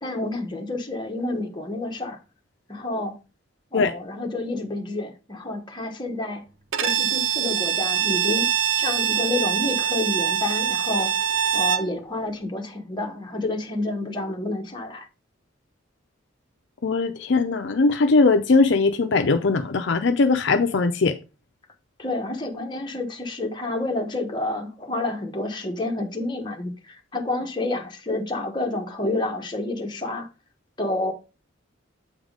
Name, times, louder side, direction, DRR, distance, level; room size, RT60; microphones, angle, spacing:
voice 1, 0.0-2.2 2.7-3.2 3.7-6.4 6.8-8.5 8.7-11.2 11.5-15.1 22.0-30.3 30.8-31.1, left 2 dB, 25° left, 1.1 m, -29 dB
Bowed string instrument, 6.7-11.9, right 8 dB, 70° right, 0.6 m, -24 dB
voice 2, 16.8-21.1, left 3 dB, 60° left, 0.5 m, -20 dB
8.0 x 3.6 x 5.0 m
head